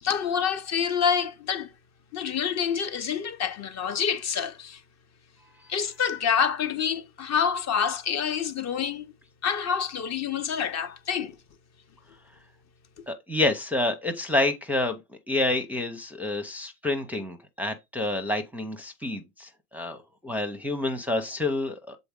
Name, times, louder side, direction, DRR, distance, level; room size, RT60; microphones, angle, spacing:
voice 1, 0.0-1.7 2.1-4.8 5.7-9.1 9.4-11.4, left 7 dB, 35° left, 0.7 m, -27 dB
voice 2, 13.1-15.0 15.3-22.0, left 2 dB, 5° right, 0.6 m, -28 dB
7.0 x 4.0 x 3.6 m
supercardioid pair, 115°, 47 cm